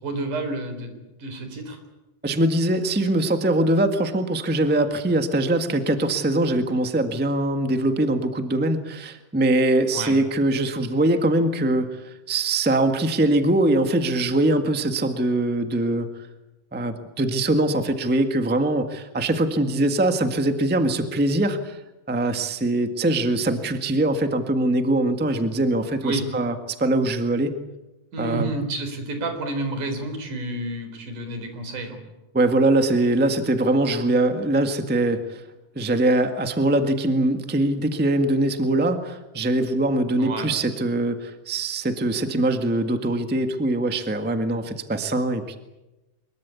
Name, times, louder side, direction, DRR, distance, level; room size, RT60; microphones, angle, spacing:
voice 1, 0.0-1.8 9.9-10.2 26.0-26.2 28.1-32.0 40.2-40.5, right 2 dB, 75° right, 7 dB, 5.6 m, -30 dB
voice 2, 2.2-16.1 16.7-21.8 22.1-27.6 28.2-28.5 32.3-35.4 35.7-45.6, right 1 dB, 10° right, 7 dB, 0.7 m, -22 dB
24.5 x 22.0 x 8.4 m, 1.0 s
omnidirectional pair, 3.6 m